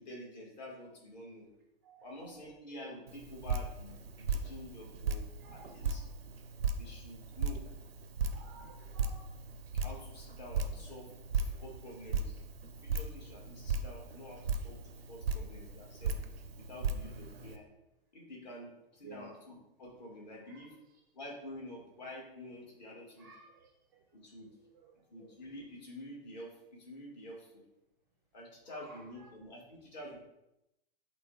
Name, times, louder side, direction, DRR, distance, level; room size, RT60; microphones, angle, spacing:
voice 1, 0.0-1.5 2.0-4.0 4.3-5.2 5.5-6.0 6.8-7.6 9.8-11.1 11.3-12.3 12.8-16.1 16.7-17.7 18.1-20.7 21.1-23.3 24.1-24.5 25.1-27.6 28.3-30.2, left 1 dB, 45° left, -2 dB, 1.5 m, -48 dB
voice 2, 1.8-2.5 5.4-6.0 8.3-9.3 19.0-19.3 20.4-20.8 23.2-23.7 24.4-24.9 28.6-29.3, right 3 dB, 20° right, -1 dB, 0.3 m, -55 dB
Drip, 3.1-17.6, right 4 dB, 80° right, 0.5 m, -37 dB
5.8 x 2.2 x 3.6 m, 0.88 s
figure-of-eight pair, 110°, 30 cm